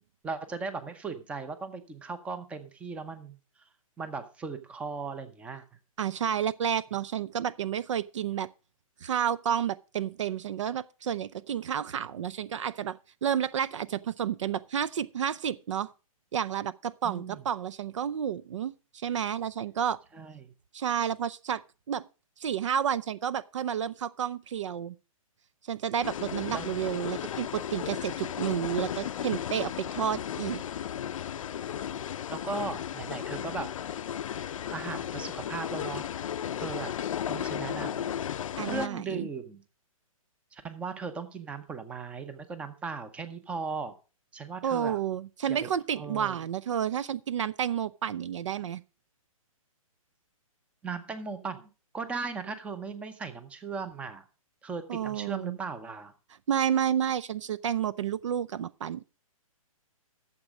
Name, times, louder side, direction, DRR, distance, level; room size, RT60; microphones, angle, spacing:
voice 1, 0.2-3.4 4.0-5.6 17.0-17.4 20.1-20.5 26.5-26.7 32.3-33.7 34.4-36.2 36.6-36.9 37.3-38.0 38.6-39.6 40.5-43.9 44.3-45.0 45.5-46.4 50.8-54.2 54.6-56.1, right 4 dB, 5° right, 0.7 m, -37 dB
voice 2, 6.0-8.5 9.0-15.9 16.3-20.0 20.7-21.6 21.9-22.1 22.4-24.9 25.7-30.6 38.6-39.3 44.6-48.8 54.9-55.6 56.5-59.0, right 9 dB, 55° right, 0.5 m, -30 dB
sound 1, 26.0-38.9, left 9 dB, 65° left, 0.5 m, -35 dB
12.5 x 7.3 x 5.1 m
hypercardioid pair, 155°, 18 cm